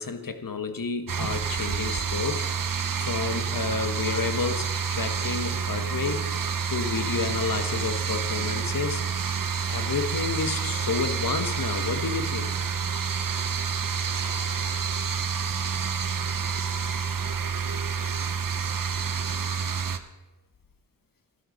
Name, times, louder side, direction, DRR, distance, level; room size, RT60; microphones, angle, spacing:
voice 1, 0.0-2.5 3.0-6.2 6.7-9.0 9.7-12.5, left 5 dB, 70° left, 8 dB, 1.4 m, -30 dB
sound 1, 1.1-20.0, right 6 dB, 70° right, 1.0 m, -28 dB
13.5 x 12.0 x 5.3 m, 1.0 s
wide cardioid pair, 75°, 35 cm